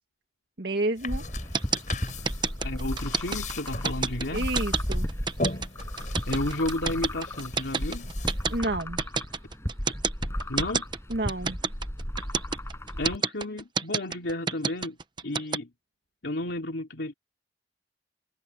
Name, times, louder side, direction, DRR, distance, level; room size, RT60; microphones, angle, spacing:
voice 1, 0.6-1.2 4.3-5.1 8.5-9.0 11.1-11.6, right 2 dB, 65° right, 1.8 m, -29 dB
sound 1, 1.0-8.6, left 2 dB, 45° left, 7.7 m, -39 dB
sound 2, 1.1-13.2, equal, 15° left, 6.0 m, -34 dB
sound 3, 1.5-15.6, right 5 dB, 25° right, 0.9 m, -28 dB
voice 2, 2.6-4.5 6.3-8.1 10.5-10.9 13.0-15.0 15.2-15.7 16.2-17.1, left 1 dB, 90° left, 3.0 m, -32 dB
head